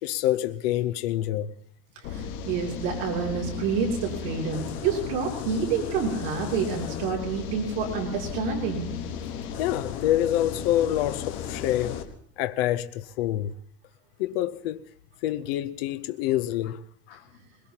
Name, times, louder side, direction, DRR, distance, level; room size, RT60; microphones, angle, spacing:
voice 1, 0.0-1.5 9.6-12.0 12.4-13.5 14.2-14.8 15.2-16.8 17.1-17.2, left 13 dB, 85° left, 0.7 m, -27 dB
sound 1, 2.0-12.0, left 7 dB, 40° left, 1.3 m, -35 dB
voice 2, 2.1-9.0, right 6 dB, 65° right, 3.1 m, -28 dB
21.5 x 21.0 x 2.9 m
cardioid pair, 175°, 29 cm